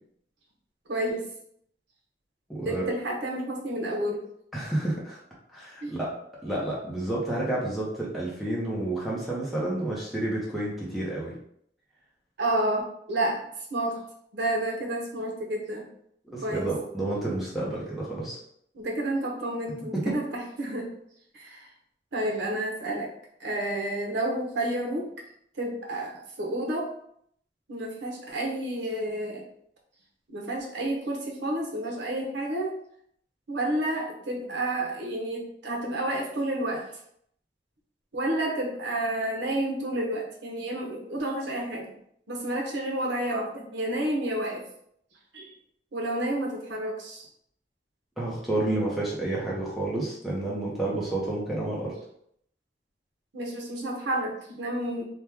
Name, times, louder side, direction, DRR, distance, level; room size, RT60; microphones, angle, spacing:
voice 1, 0.9-1.3 2.6-4.2 5.8-6.0 12.4-14.0 14.3-15.9 16.4-16.7 18.7-20.9 21.3-21.7 22.1-23.1 23.4-25.1 25.6-26.9 27.7-29.5 30.3-32.8 33.5-36.9 38.1-41.9 42.3-44.6 45.3-45.5 45.9-47.2 53.3-55.0, right 1 dB, 85° right, 0 dB, 0.8 m, -30 dB
voice 2, 2.5-2.8 4.5-5.2 5.5-6.1 6.4-11.3 16.3-18.4 19.9-20.0 48.2-51.9, right 1 dB, ahead, -7 dB, 0.7 m, -30 dB
2.9 x 2.2 x 3.4 m, 0.69 s
head